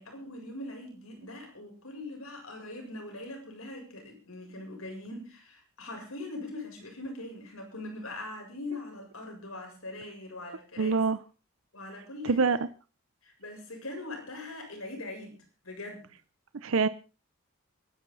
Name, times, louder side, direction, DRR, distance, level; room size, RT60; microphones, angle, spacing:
voice 1, 0.0-11.0 11.7-12.4 13.2-16.1, left 2 dB, 85° left, 2 dB, 7.5 m, -41 dB
voice 2, 10.8-11.2 12.2-12.6 16.6-16.9, right 5 dB, 75° right, 14 dB, 0.7 m, -24 dB
25.0 x 11.5 x 4.0 m, 0.34 s
head